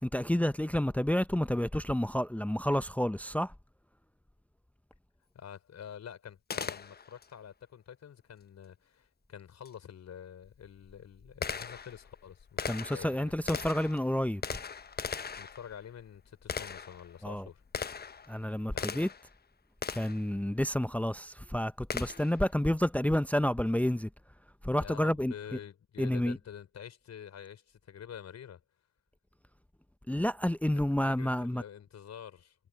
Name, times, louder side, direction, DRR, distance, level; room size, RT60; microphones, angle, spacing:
voice 1, 0.0-3.5 12.7-14.4 17.2-17.5 18.3-19.1 19.9-24.1 24.6-25.3 26.0-26.4 30.1-31.6, left 1 dB, 5° left, 1.1 m, -29 dB
voice 2, 5.3-13.6 15.4-17.6 18.7-19.0 24.8-28.6 31.0-32.6, left 8 dB, 45° left, 5.5 m, -47 dB
Gunshot gunfire, 6.5-7.3 9.6-9.7 10.5-19.3 19.8-20.3 21.9-22.4, left 6 dB, 25° left, 1.2 m, -39 dB
figure-of-eight pair, 50°, 38 cm